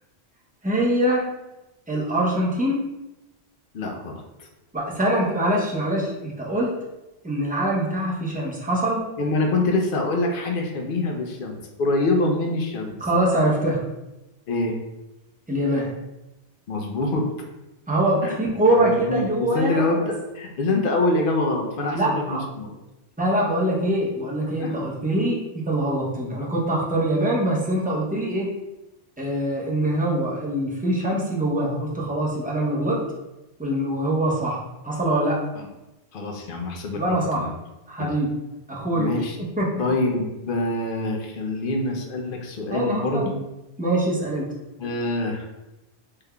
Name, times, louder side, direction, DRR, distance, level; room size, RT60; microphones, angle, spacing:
voice 1, 0.6-1.2 1.9-2.8 4.7-6.8 7.2-9.1 13.0-13.8 15.5-15.9 17.9-20.1 21.9-22.4 23.2-28.5 29.2-33.0 33.6-34.6 34.8-35.4 36.9-37.5 37.9-38.3 38.7-39.1 39.6-39.7 42.7-43.3 43.8-44.5, right 1 dB, 10° right, -5 dB, 0.5 m, -23 dB
voice 2, 3.7-4.5 9.2-13.0 14.5-14.8 16.7-17.3 18.2-18.4 18.8-22.7 24.6-24.8 35.6-35.7 36.1-37.5 38.0-38.1 38.9-39.4 39.8-43.4 44.8-45.5, left 2 dB, 60° left, 1 dB, 0.7 m, -25 dB
3.5 x 3.5 x 2.2 m, 0.98 s
omnidirectional pair, 1.1 m